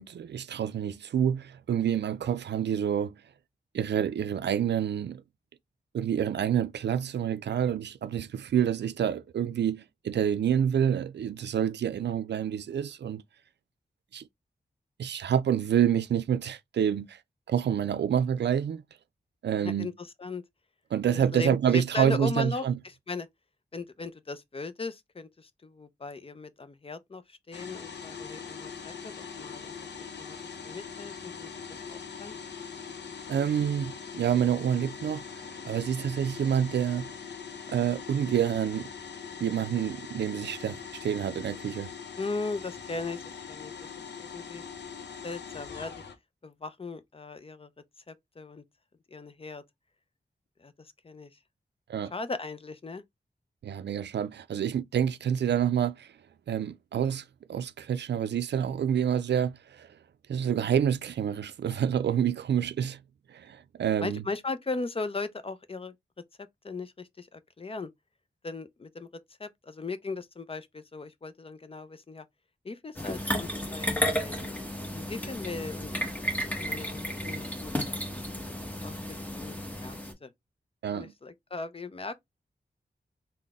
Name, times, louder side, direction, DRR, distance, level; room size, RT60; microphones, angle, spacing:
voice 1, 0.0-3.2 3.7-5.2 5.9-13.2 14.1-14.2 15.0-17.2 17.5-18.8 19.4-19.9 20.9-22.8 33.3-35.2 35.7-37.1 37.7-38.9 39.4-41.9 51.9-52.1 53.6-56.1 56.5-57.2 57.5-59.9 60.3-63.0 63.3-64.2 80.8-81.1, right 9 dB, 90° right, 0.4 m, -28 dB
voice 2, 19.6-20.4 21.1-23.3 23.7-29.7 30.2-30.4 30.6-31.5 31.9-32.4 42.1-43.9 44.2-44.6 45.2-45.9 46.4-47.7 48.1-48.6 49.1-49.6 50.6-51.3 52.1-53.0 64.0-65.9 66.6-67.9 68.4-69.1 69.4-72.2 72.6-74.5 74.9-75.9 76.5-78.4 78.8-80.3 80.9-82.1, left 3 dB, 35° left, 0.5 m, -38 dB
sound 1, 27.5-46.2, left 6 dB, 85° left, 0.7 m, -42 dB
sound 2, 73.0-80.1, equal, 10° left, 0.9 m, -33 dB
3.9 x 2.1 x 3.4 m
wide cardioid pair, 95°, 17 cm